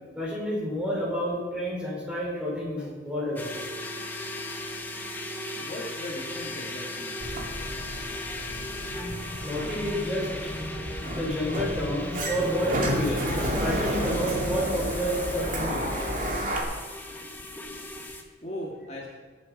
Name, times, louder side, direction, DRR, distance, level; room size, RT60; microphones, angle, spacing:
voice 1, 0.2-3.5 9.4-10.3 11.2-13.2 13.6-15.9, equal, 5° right, -5 dB, 5.1 m, -29 dB
sound 1, 3.4-18.2, left 1 dB, 10° left, 1.3 m, -37 dB
voice 2, 5.6-7.2 18.4-19.1, left 1 dB, 40° left, -3 dB, 2.0 m, -38 dB
Sliding door, 7.2-16.6, equal, 50° right, 2.4 m, -31 dB
21.5 x 8.1 x 5.3 m, 1.4 s
head